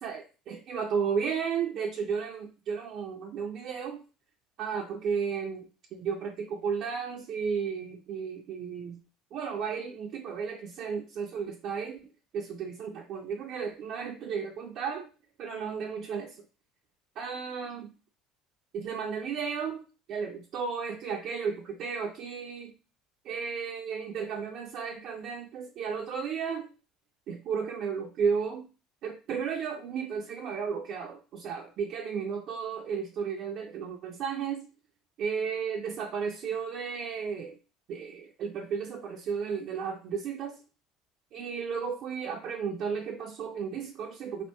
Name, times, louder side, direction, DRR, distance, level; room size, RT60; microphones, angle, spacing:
voice 1, 0.0-4.0 4.6-9.0 9.3-12.0 12.3-15.1 15.4-16.4 17.2-17.9 18.7-22.7 23.2-26.7 27.3-28.7 29.0-34.7 35.2-37.6 37.9-40.6 41.3-44.5, right 6 dB, 60° right, 1 dB, 0.4 m, -34 dB
2.8 x 2.5 x 3.3 m, 0.33 s
supercardioid pair, 95°, 0 cm